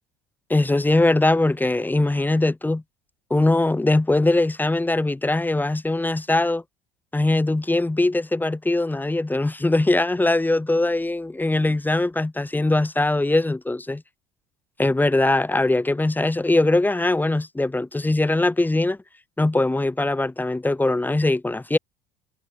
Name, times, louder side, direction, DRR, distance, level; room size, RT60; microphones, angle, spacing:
voice 1, 0.5-2.8 3.3-6.6 7.1-14.0 14.8-19.0 19.4-21.8, left 2 dB, 10° left, 1.3 m, -21 dB
hypercardioid pair, 75°, 20 cm